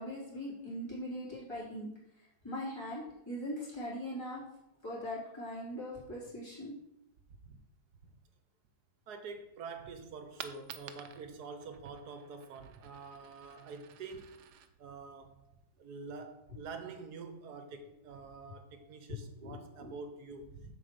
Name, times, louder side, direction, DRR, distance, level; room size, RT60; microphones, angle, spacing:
voice 1, 0.0-1.9 2.4-4.4 4.8-6.7 19.4-19.6 19.8-19.9, equal, 15° left, 3.5 m, -40 dB
voice 2, 9.1-14.4 14.8-15.4 15.8-20.7, right 4 dB, 75° right, 1.4 m, -46 dB
Coin (dropping), 10.2-16.1, right 9 dB, 90° right, 1.2 m, -53 dB
7.5 x 4.7 x 6.9 m
omnidirectional pair, 1.7 m